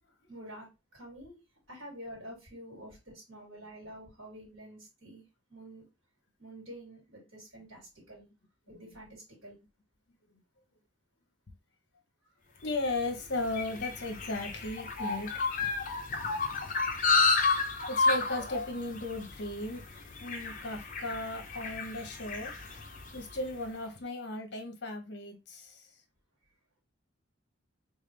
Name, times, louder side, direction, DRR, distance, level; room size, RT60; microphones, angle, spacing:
voice 1, 0.3-1.4 1.7-5.2 5.5-5.9 6.4-8.2 8.7-9.6 12.5-12.6, equal, 70° right, 2.7 m, -48 dB
voice 2, 12.6-15.7 17.6-19.8 20.2-22.5 22.9-25.8, left 2 dB, 55° left, 1.1 m, -36 dB
sound 1, 12.8-23.4, left 4 dB, 40° left, 0.7 m, -31 dB
3.7 x 3.6 x 3.3 m
head